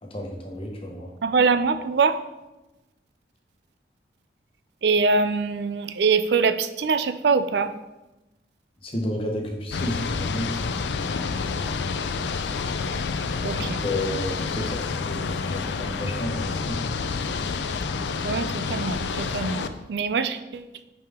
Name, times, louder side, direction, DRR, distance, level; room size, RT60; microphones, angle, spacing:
voice 1, 0.0-1.1 8.8-10.5 13.6-14.8 15.1-16.9, left 1 dB, 30° left, 1 dB, 1.1 m, -31 dB
voice 2, 1.2-2.2 4.8-7.7 13.4-13.8 18.2-20.9, right 4 dB, 70° right, 12 dB, 0.4 m, -23 dB
sound 1, 9.7-19.7, left 4 dB, 80° left, 0.5 m, -28 dB
8.9 x 4.9 x 3.6 m, 1.0 s
head